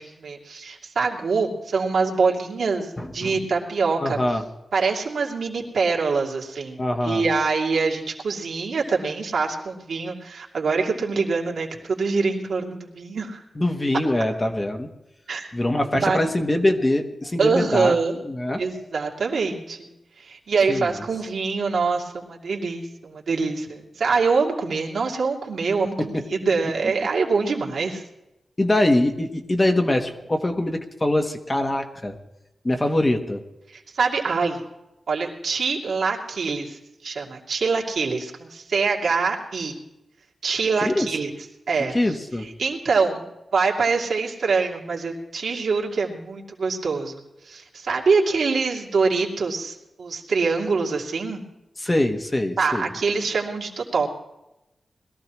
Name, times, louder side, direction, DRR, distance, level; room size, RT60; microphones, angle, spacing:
voice 1, 0.0-4.2 4.7-13.4 15.3-15.5 16.0-16.2 17.4-18.2 18.6-19.9 20.2-28.0 33.7-34.6 35.1-39.8 40.4-41.3 41.7-43.2 43.5-51.4 52.6-54.1, right 4 dB, 70° right, -1 dB, 2.5 m, -24 dB
voice 2, 3.0-3.3 4.0-4.4 6.8-7.3 13.6-14.9 15.5-18.0 18.2-18.6 20.7-20.9 26.0-26.2 28.6-32.2 32.6-33.4 40.8-41.1 41.9-42.5 51.8-52.9, left 1 dB, 20° left, 5 dB, 1.2 m, -23 dB
21.5 x 14.5 x 3.0 m, 0.94 s
wide cardioid pair, 165°, 0 cm